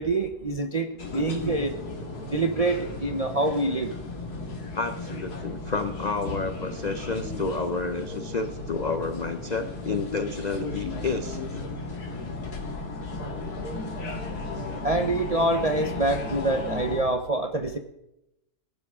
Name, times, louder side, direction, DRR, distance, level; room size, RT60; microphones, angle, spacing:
voice 1, 0.0-1.7 2.2-3.9 14.8-17.8, right 2 dB, 45° right, 6 dB, 0.4 m, -26 dB
sound 1, 1.0-17.0, left 3 dB, 85° left, 2.4 m, -35 dB
voice 2, 4.7-11.4, left 4 dB, 60° left, 9 dB, 0.4 m, -30 dB
19.0 x 11.5 x 3.6 m, 0.87 s
omnidirectional pair, 1.6 m